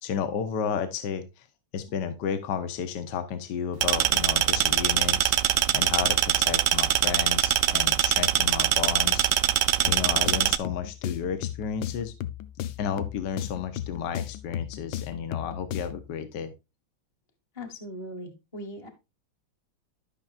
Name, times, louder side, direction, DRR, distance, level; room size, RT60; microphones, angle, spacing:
voice 1, 0.0-1.4 1.7-9.3 9.8-12.1 12.8-16.5, left 7 dB, 65° left, 1.5 m, -32 dB
sound 1, 3.8-10.6, right 12 dB, 70° right, 1.1 m, -23 dB
sound 2, 9.9-16.1, left 12 dB, 85° left, 1.4 m, -36 dB
voice 2, 17.5-18.9, left 1 dB, 20° left, 1.1 m, -39 dB
12.5 x 5.9 x 2.4 m
omnidirectional pair, 2.2 m